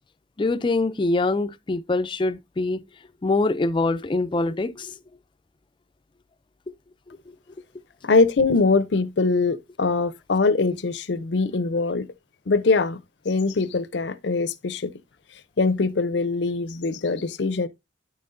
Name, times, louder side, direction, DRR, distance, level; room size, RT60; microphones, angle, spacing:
voice 1, 0.4-2.8 3.2-4.9 6.7-6.8 7.3-7.4, left 2 dB, 25° left, 0.4 m, -24 dB
voice 2, 8.0-12.1 12.5-14.9 15.6-17.7, left 3 dB, 70° left, 0.6 m, -22 dB
9.5 x 5.6 x 2.5 m
head